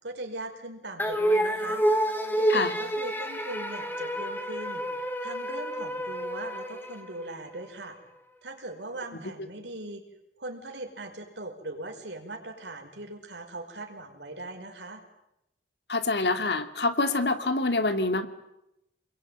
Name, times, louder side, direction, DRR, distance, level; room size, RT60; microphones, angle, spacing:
voice 1, 0.0-1.8 2.4-4.9 5.2-8.0 8.4-10.0 10.4-15.0, right 2 dB, 80° right, 4 dB, 5.5 m, -40 dB
sound 1, 1.0-7.5, right 1 dB, 10° left, 2.3 m, -29 dB
voice 2, 15.9-18.3, left 3 dB, 70° left, 8 dB, 2.4 m, -26 dB
29.5 x 22.0 x 9.3 m, 0.86 s
head